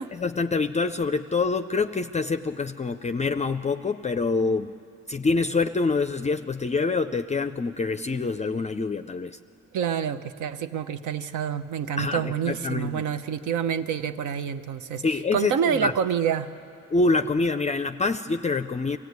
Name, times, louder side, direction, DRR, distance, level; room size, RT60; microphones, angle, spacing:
voice 1, 0.0-4.8 5.1-9.4 12.0-13.0 15.0-15.9 16.9-19.0, left 3 dB, 25° left, 9 dB, 0.4 m, -26 dB
voice 2, 9.7-15.0 15.3-16.5, right 8 dB, 75° right, 11 dB, 0.9 m, -27 dB
23.5 x 15.0 x 9.5 m, 2.7 s
cardioid pair, 90°, 30 cm